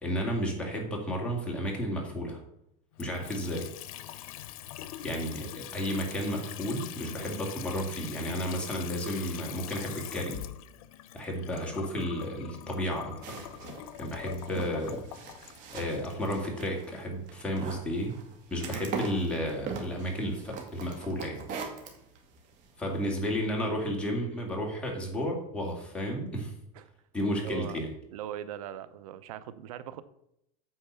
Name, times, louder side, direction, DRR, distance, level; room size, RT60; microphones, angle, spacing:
voice 1, 0.0-2.4 3.0-3.7 5.0-10.4 11.1-13.5 14.0-15.0 15.7-18.2 18.5-21.5 22.8-26.5 27.1-27.9, equal, 5° left, -2 dB, 2.3 m, -32 dB
Water tap faucet / Sink (filling or washing) / Trickle dribble, 2.9-17.0, left 12 dB, 85° left, 0.7 m, -43 dB
sound 1, 13.2-23.3, right 5 dB, 50° right, 2.1 m, -42 dB
voice 2, 27.4-27.8 28.1-30.0, right 11 dB, 90° right, 15 dB, 0.6 m, -40 dB
8.7 x 4.5 x 6.8 m, 0.78 s
supercardioid pair, 145°, 18 cm